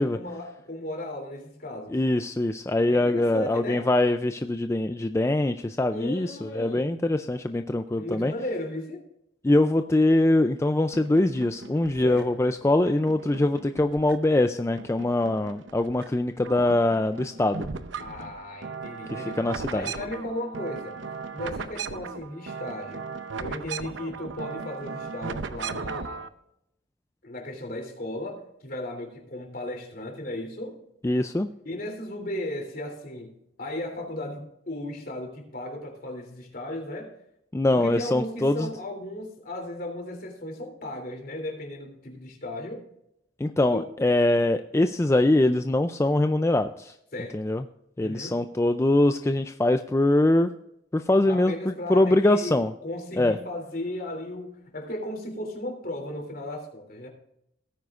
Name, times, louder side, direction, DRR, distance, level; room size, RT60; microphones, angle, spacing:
voice 1, 0.0-2.0 2.9-3.8 5.9-7.0 8.0-9.0 12.0-12.3 18.0-21.0 21.3-23.1 23.4-26.3 27.2-30.8 31.6-37.1 37.7-42.8 43.6-43.8 47.1-47.3 48.0-48.4 51.2-57.1, left 1 dB, 50° left, 3 dB, 3.2 m, -36 dB
voice 2, 1.9-8.3 9.4-17.7 19.1-19.9 31.0-31.5 37.5-38.7 43.4-46.9 47.3-47.6 48.0-50.5 50.9-52.7 53.2-53.4, left 1 dB, 15° left, 8 dB, 0.4 m, -23 dB
sound 1, 10.9-12.4 12.9-14.4 14.8-16.1 16.4-26.3, right 5 dB, 85° right, 0.7 m, -37 dB
17.5 x 9.3 x 2.5 m, 0.78 s
head